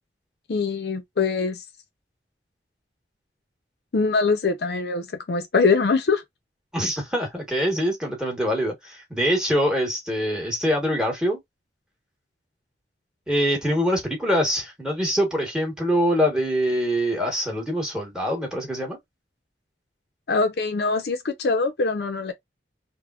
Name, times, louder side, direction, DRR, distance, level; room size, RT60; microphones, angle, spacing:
voice 1, 0.5-1.6 3.9-6.2 20.3-22.3, left 4 dB, 60° left, 0.5 m, -23 dB
voice 2, 6.7-11.4 13.3-19.0, equal, 5° right, 1.1 m, -24 dB
3.4 x 2.0 x 2.3 m
head